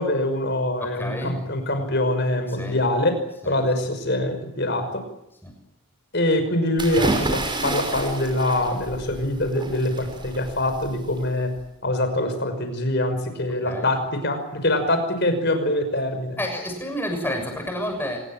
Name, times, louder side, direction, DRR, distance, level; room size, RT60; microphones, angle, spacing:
voice 1, 0.0-3.1 3.5-5.0 6.1-11.5 11.8-16.4, left 1 dB, 50° left, 8 dB, 5.7 m, -24 dB
voice 2, 0.8-1.4 2.5-2.8 3.4-3.6 5.4-5.5 13.7-13.9 16.4-18.2, equal, 10° left, 4 dB, 7.0 m, -30 dB
sound 1, 6.8-11.6, right 2 dB, 20° right, 5.7 m, -30 dB
26.5 x 21.0 x 8.8 m, 0.84 s
head